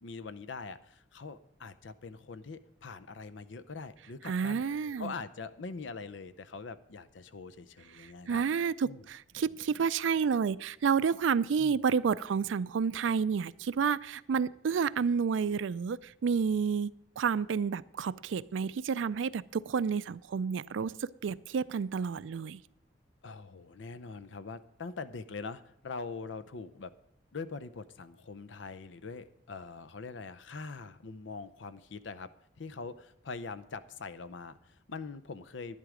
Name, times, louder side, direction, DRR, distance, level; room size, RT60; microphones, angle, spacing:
voice 1, 0.0-4.6 5.0-8.4 8.8-9.1 11.6-11.8 23.2-26.9 27.3-32.3 32.6-35.8, left 4 dB, 75° left, 14 dB, 0.6 m, -43 dB
voice 2, 4.2-5.1 8.0-22.6, right 6 dB, 85° right, 17 dB, 0.4 m, -30 dB
11.0 x 10.5 x 4.9 m, 0.74 s
head